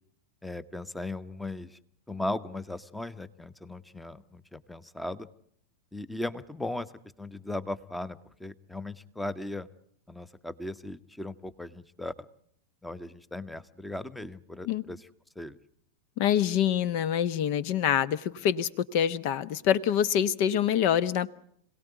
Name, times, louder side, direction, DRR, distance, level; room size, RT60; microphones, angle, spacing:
voice 1, 0.4-1.8 2.1-5.3 5.9-6.9 7.2-9.7 10.1-12.3 12.8-15.1 15.3-15.6, left 2 dB, 5° left, 16 dB, 1.0 m, -37 dB
voice 2, 16.2-21.3, left 9 dB, 45° left, 19 dB, 1.0 m, -26 dB
26.0 x 18.0 x 9.3 m, 0.68 s
figure-of-eight pair, 90°, 0 cm